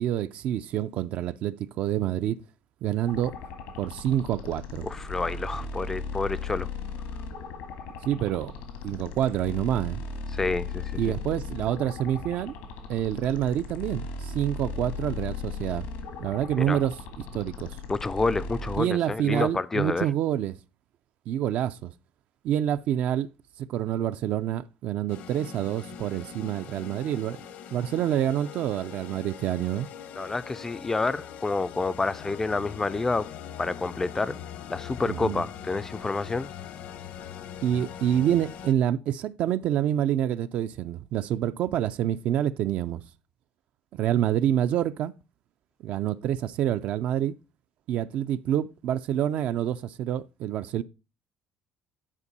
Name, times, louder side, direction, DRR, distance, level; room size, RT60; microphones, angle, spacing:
voice 1, 0.0-2.4 2.8-3.3 3.8-4.9 8.0-8.5 8.8-10.0 11.0-12.5 12.9-15.9 16.2-16.9 17.3-17.8 18.8-20.6 21.3-21.9 22.4-23.3 23.6-27.4 27.7-29.9 35.1-35.4 37.6-43.0 43.9-45.1 45.8-47.3 47.9-50.8, right 11 dB, 60° right, 0.4 m, -27 dB
sound 1, 3.0-18.8, left 4 dB, 85° left, 1.7 m, -37 dB
voice 2, 4.8-6.7 10.3-11.0 16.6-16.8 17.9-20.1 30.2-33.3 33.6-34.4 34.7-36.5, left 3 dB, 15° left, 0.3 m, -28 dB
sound 2, 25.1-38.7, left 9 dB, 65° left, 0.9 m, -42 dB
9.9 x 4.5 x 4.1 m
cardioid pair, 135°, 3 cm